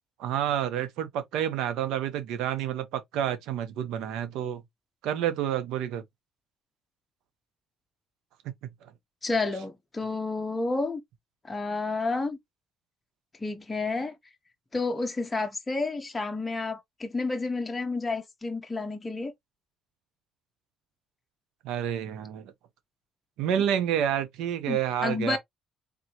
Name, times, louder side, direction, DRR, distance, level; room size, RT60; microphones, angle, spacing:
voice 1, 0.2-4.6 5.0-6.0 21.6-22.5 23.4-25.4, right 10 dB, 85° right, 1.0 m, -29 dB
voice 2, 9.2-11.0 11.4-12.4 13.4-14.1 14.7-19.3 24.7-25.4, left 3 dB, 20° left, 1.0 m, -30 dB
3.9 x 2.9 x 2.9 m
cardioid pair, 105°, 0 cm